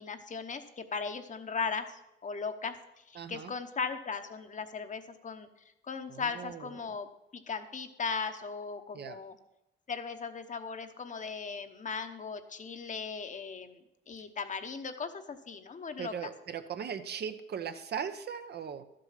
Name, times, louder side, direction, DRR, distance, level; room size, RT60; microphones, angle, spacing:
voice 1, 0.0-2.8 3.1-5.5 5.9-7.1 7.5-9.3 9.9-13.8 14.1-16.3, left 5 dB, 40° left, 8 dB, 1.0 m, -37 dB
voice 2, 3.1-3.5 6.1-6.9 8.9-9.2 16.0-18.8, right 7 dB, 55° right, 9 dB, 0.9 m, -39 dB
12.0 x 7.7 x 5.8 m, 0.87 s
cardioid pair, 90°, 20 cm